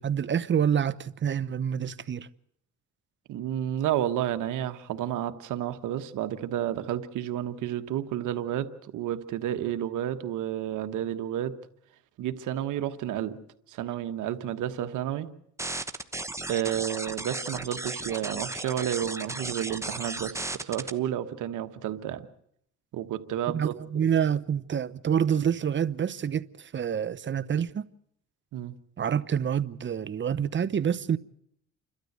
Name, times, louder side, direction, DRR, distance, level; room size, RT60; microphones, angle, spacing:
voice 1, 0.0-2.3 23.5-27.9 29.0-31.2, right 8 dB, 40° right, 0.8 m, -27 dB
voice 2, 3.3-11.5 12.2-13.4 13.7-15.3 16.5-22.3 22.9-23.8 28.5-28.7, right 11 dB, 85° right, 1.3 m, -31 dB
sound 1, 15.6-20.9, right 2 dB, 10° right, 1.1 m, -35 dB
29.0 x 12.5 x 8.0 m
cardioid pair, 90°, 30 cm